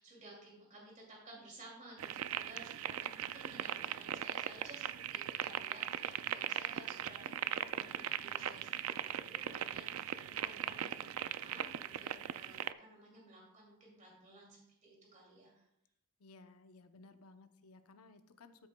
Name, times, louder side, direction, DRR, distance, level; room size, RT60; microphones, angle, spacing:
voice 1, 0.0-15.6, right 2 dB, 35° right, -3 dB, 2.5 m, -56 dB
sound 1, 2.0-12.7, right 10 dB, 70° right, 0.4 m, -39 dB
voice 2, 16.2-18.7, left 3 dB, 80° left, 8 dB, 0.7 m, -58 dB
13.0 x 8.1 x 2.2 m, 0.78 s
head